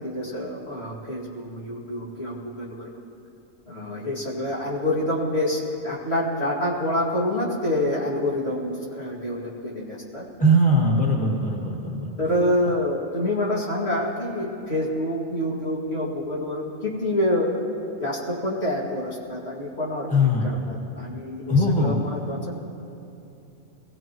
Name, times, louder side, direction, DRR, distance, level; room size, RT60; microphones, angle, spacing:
voice 1, 0.0-3.0 3.7-10.3 12.2-17.7 18.0-22.6, left 1 dB, 50° left, -5 dB, 2.7 m, -27 dB
voice 2, 10.4-12.1 20.1-20.6 21.5-22.0, equal, 5° left, -2 dB, 1.4 m, -20 dB
21.0 x 17.0 x 3.1 m, 2.8 s
omnidirectional pair, 1.4 m